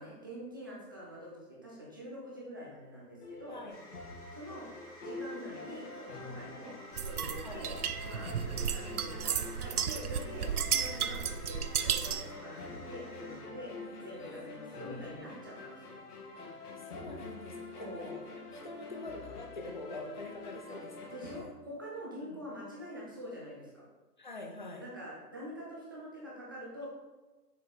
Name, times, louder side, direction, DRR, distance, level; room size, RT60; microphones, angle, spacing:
voice 1, 0.0-3.6 4.3-4.7 5.0-7.7 8.0-15.9 17.7-18.2 21.1-23.8 24.8-26.9, equal, 15° right, -5 dB, 0.7 m, -45 dB
sound 1, 3.2-21.4, left 3 dB, 70° left, 1.6 m, -46 dB
voice 2, 3.5-3.8 7.4-7.7 13.8-15.2 16.4-18.2 18.5-21.5 22.2-22.4 24.2-24.9 26.8-26.9, left 2 dB, 30° left, 3 dB, 0.5 m, -46 dB
sound 2, 3.7-13.4, equal, 10° left, 1.0 m, -54 dB
sound 3, 7.0-12.3, right 8 dB, 65° right, 0.6 m, -34 dB
6.5 x 4.7 x 4.0 m, 1.1 s
hypercardioid pair, 165°, 48 cm